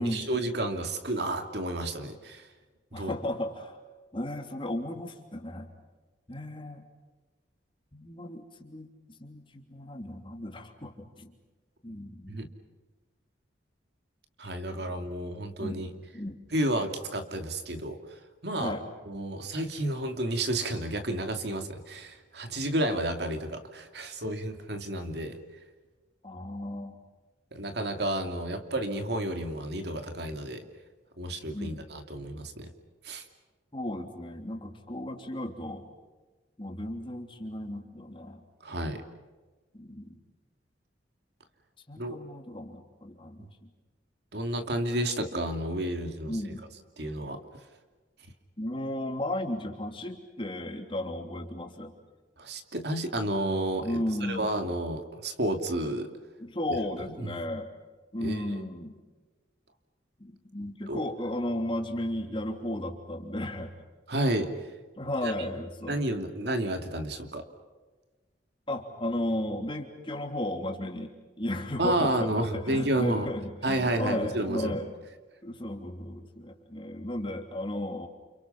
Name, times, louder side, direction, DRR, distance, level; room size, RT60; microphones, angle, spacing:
voice 1, 0.0-2.5 2.9-3.1 12.3-12.5 14.4-15.9 16.5-18.8 19.1-25.4 27.5-30.7 31.2-32.7 33.0-33.2 38.6-39.0 42.0-42.2 43.4-43.5 44.3-46.4 47.0-47.4 52.4-54.0 54.3-56.1 57.2-57.4 58.2-58.6 60.9-61.0 64.1-64.7 65.2-65.3 65.9-67.5 71.8-73.3 73.6-74.8, right 1 dB, 65° right, 6 dB, 2.7 m, -31 dB
voice 2, 2.9-3.8 4.1-5.7 6.3-6.8 7.9-8.9 9.2-11.3 11.8-12.4 15.6-15.9 16.1-16.4 18.6-18.8 26.2-27.0 31.5-31.8 33.7-35.8 36.6-38.4 39.7-40.2 41.9-43.7 46.3-46.7 48.6-51.9 53.8-54.5 56.4-57.7 58.1-59.0 60.2-63.7 65.0-66.0 68.7-74.9 75.4-78.1, left 1 dB, 30° left, 3 dB, 3.2 m, -34 dB
30.0 x 29.5 x 5.7 m, 1.3 s
head